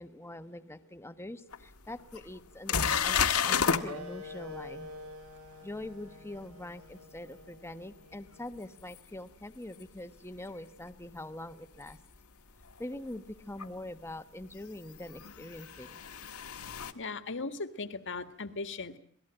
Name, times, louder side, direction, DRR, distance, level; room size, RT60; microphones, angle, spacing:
voice 1, 0.0-3.2 3.4-4.9 5.6-12.0 12.8-16.0, left 1 dB, 10° left, 10 dB, 1.2 m, -43 dB
sound 1, 1.5-1.6 2.1-2.2 2.7-3.8 9.0-9.1 11.8-11.9 13.6-13.7 15.1-16.9, left 6 dB, 75° left, 1.7 m, -30 dB
sound 2, 3.8-9.0, left 2 dB, 75° right, 4.4 m, -47 dB
voice 2, 17.0-19.0, left 3 dB, 55° left, 10 dB, 1.8 m, -38 dB
27.5 x 19.0 x 9.0 m, 0.62 s
head